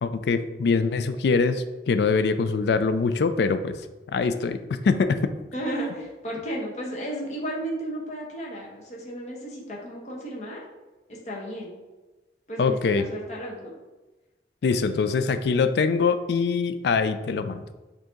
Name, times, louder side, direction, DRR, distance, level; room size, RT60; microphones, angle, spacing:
voice 1, 0.0-3.8 4.1-5.2 12.6-13.1 14.6-17.6, left 4 dB, 70° left, 10 dB, 0.3 m, -23 dB
voice 2, 5.5-10.6 11.1-11.8 12.5-13.7, right 1 dB, 40° left, -3 dB, 1.0 m, -33 dB
4.9 x 2.7 x 3.7 m, 1.2 s
head